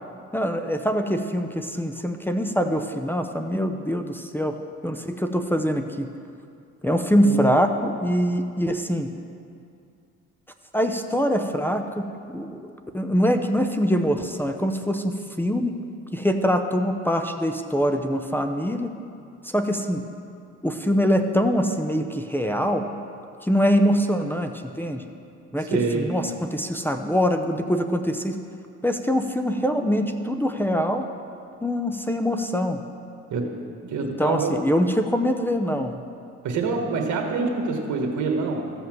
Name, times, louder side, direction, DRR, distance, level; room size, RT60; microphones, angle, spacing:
voice 1, 0.3-4.6 4.8-6.1 6.8-9.1 10.7-15.8 16.1-18.9 19.4-20.0 20.6-22.9 23.4-25.0 25.5-28.4 28.8-31.1 31.6-32.8 34.0-36.0, equal, 5° left, 6 dB, 0.7 m, -24 dB
voice 2, 25.7-26.2 33.3-33.6 33.8-34.5 36.4-38.7, right 4 dB, 75° right, 2 dB, 1.5 m, -26 dB
14.0 x 5.6 x 7.6 m, 2.4 s
cardioid pair, 90°, 30 cm